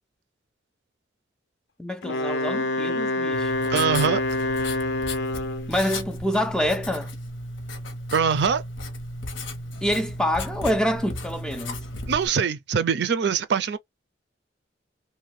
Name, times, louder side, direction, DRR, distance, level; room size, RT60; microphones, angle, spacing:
voice 1, 1.8-3.8 5.7-7.1 9.8-11.8, equal, 5° left, 0.3 m, -26 dB
Wind instrument woodwind instrument, 2.0-5.8, left 2 dB, 65° left, 0.5 m, -26 dB
Writing, 3.3-12.3, left 1 dB, 85° left, 0.9 m, -34 dB
voice 2, 3.7-4.2 8.1-8.6 12.1-13.8, right 6 dB, 60° right, 0.4 m, -23 dB
2.6 x 2.2 x 3.2 m
head